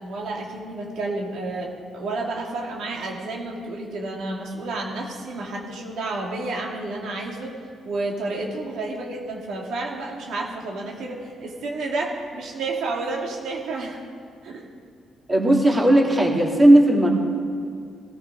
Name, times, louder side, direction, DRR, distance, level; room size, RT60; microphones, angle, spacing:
voice 1, 0.0-7.5 7.8-14.0 14.4-14.6, right 2 dB, 75° right, -1 dB, 2.8 m, -30 dB
voice 2, 15.3-17.1, right 1 dB, 25° right, -1 dB, 3.1 m, -16 dB
17.0 x 14.5 x 5.0 m, 2.2 s
cardioid pair, 90°, 0 cm